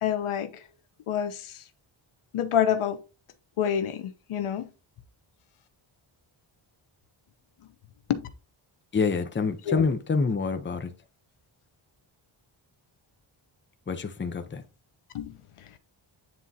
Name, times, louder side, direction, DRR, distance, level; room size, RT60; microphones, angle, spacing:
voice 1, 0.0-0.7 1.1-1.6 2.3-3.0 3.6-4.7 8.1-8.3 9.6-9.9 15.1-15.8, left 9 dB, 90° left, 0.9 m, -28 dB
voice 2, 8.9-10.9 13.9-14.6, left 4 dB, 25° left, 0.7 m, -27 dB
9.3 x 3.7 x 2.7 m
wide cardioid pair, 115°, 49 cm